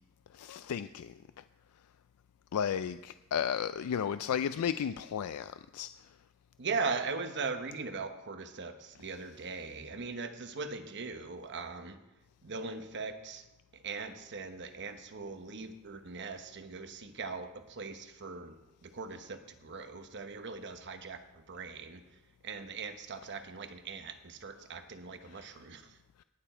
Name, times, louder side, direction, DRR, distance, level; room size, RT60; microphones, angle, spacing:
voice 1, 0.4-1.1 2.5-5.9, left 8 dB, 85° left, 0.4 m, -33 dB
voice 2, 6.6-12.0 12.4-13.4 13.7-18.6 18.8-22.0 22.4-26.0, right 4 dB, 55° right, 1.0 m, -40 dB
18.5 x 6.9 x 4.4 m
head